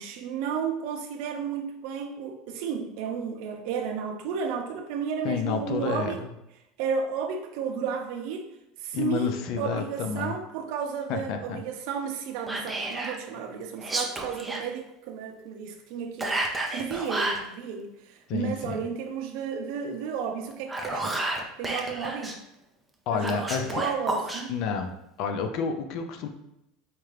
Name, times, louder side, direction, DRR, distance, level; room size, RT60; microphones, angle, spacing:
voice 1, 0.0-6.2 6.8-8.5 8.8-16.4 16.7-21.2 21.6-22.4 23.1-24.5, right 6 dB, 60° right, 4 dB, 0.6 m, -33 dB
voice 2, 5.2-6.3 8.9-10.3 11.1-11.6 18.3-18.8 23.1-23.8 24.5-24.9 25.2-26.3, left 6 dB, 50° left, 6 dB, 0.5 m, -30 dB
Whispering, 12.5-13.2 13.8-14.6 16.2-17.5 20.5-22.4 23.2-24.4, right 2 dB, 5° right, 0.4 m, -30 dB
4.4 x 2.5 x 3.2 m, 0.85 s
supercardioid pair, 155°, 0 cm